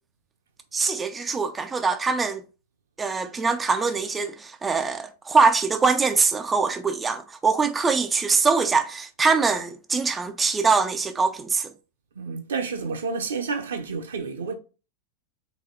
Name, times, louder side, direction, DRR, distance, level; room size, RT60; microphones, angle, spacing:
voice 1, 0.7-2.4 3.0-11.7, right 4 dB, 15° right, 0.4 m, -23 dB
voice 2, 12.2-14.6, right 4 dB, 65° right, 0.8 m, -30 dB
4.1 x 3.5 x 3.7 m
figure-of-eight pair, 90°, 0 cm